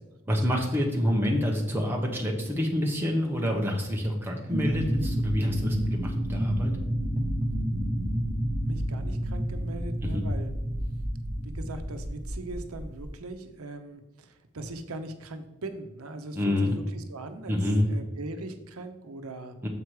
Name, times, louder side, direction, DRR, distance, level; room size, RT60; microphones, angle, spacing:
voice 1, 0.3-6.7 10.0-10.2 16.4-16.8 17.5-17.9 19.6-19.7, left 1 dB, 10° right, -1 dB, 1.0 m, -27 dB
sound 1, 4.5-13.1, equal, 35° right, 1.1 m, -30 dB
voice 2, 8.7-10.5 11.3-19.5, right 2 dB, 90° right, 7 dB, 0.8 m, -40 dB
7.4 x 4.7 x 4.8 m, 0.99 s
head